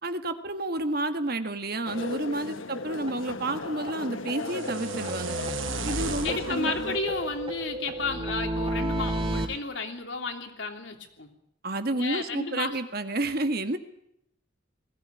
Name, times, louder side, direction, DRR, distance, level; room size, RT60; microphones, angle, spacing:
voice 1, 0.0-5.4 5.8-6.7 11.6-13.8, right 2 dB, 50° right, 9 dB, 1.7 m, -30 dB
sound 1, 1.9-7.0, left 3 dB, 80° left, 1.2 m, -36 dB
sound 2, 3.1-3.2 3.5-3.6 3.9-4.0 4.3-4.4 4.7-6.0 6.3-9.5, right 1 dB, 30° right, 2.6 m, -32 dB
sound 3, 4.4-8.5, right 4 dB, 80° right, 1.1 m, -37 dB
voice 2, 6.2-11.3 11.9-12.8, left 3 dB, 65° left, 4 dB, 3.1 m, -32 dB
21.0 x 16.5 x 9.8 m, 0.75 s
head